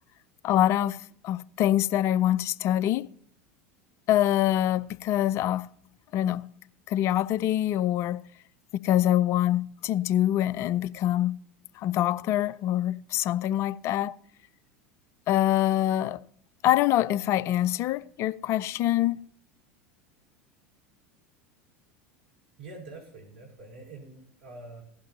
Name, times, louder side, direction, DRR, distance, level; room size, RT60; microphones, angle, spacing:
voice 1, 0.4-3.1 4.1-5.7 6.1-6.5 6.9-8.2 8.8-11.4 11.8-14.2 15.3-16.2 16.6-19.2, left 12 dB, 45° left, 0.4 m, -25 dB
voice 2, 22.6-24.8, right 2 dB, 70° right, 4.5 m, -45 dB
16.0 x 11.5 x 2.7 m
figure-of-eight pair, 80°, 6 cm